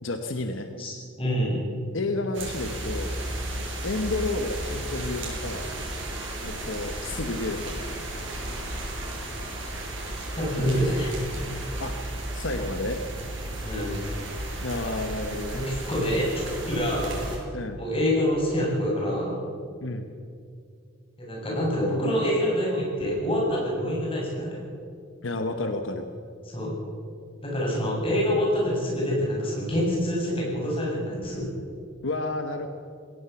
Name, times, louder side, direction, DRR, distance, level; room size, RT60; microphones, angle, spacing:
voice 1, 0.0-0.7 1.9-3.1 3.8-5.7 6.4-7.9 10.7-10.9 11.8-12.0 12.3-13.0 14.6-15.6 17.5-17.8 19.8-20.1 25.2-26.0 32.0-32.7, left 2 dB, 80° left, 7 dB, 1.2 m, -31 dB
voice 2, 0.8-1.6 10.3-11.1 13.6-14.0 15.5-17.3 17.8-19.4 21.2-24.6 26.5-26.8 27.4-31.5, equal, 25° left, -3 dB, 7.6 m, -26 dB
sound 1, 2.3-17.4, right 1 dB, 65° right, 6.7 m, -34 dB
21.0 x 17.5 x 7.1 m, 2.3 s
head